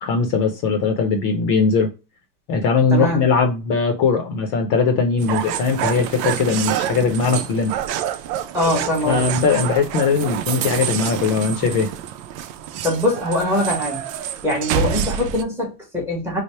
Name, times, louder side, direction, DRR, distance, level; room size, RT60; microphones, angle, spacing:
voice 1, 0.0-1.9 2.5-7.7 9.1-11.9, left 5 dB, 45° left, 0.6 m, -20 dB
voice 2, 2.9-3.2 8.5-9.3 12.8-14.1 14.4-16.4, left 1 dB, 5° right, 0.9 m, -22 dB
sound 1, 5.2-15.4, right 10 dB, 90° right, 0.6 m, -27 dB
3.3 x 2.0 x 4.1 m
cardioid pair, 160°, 47 cm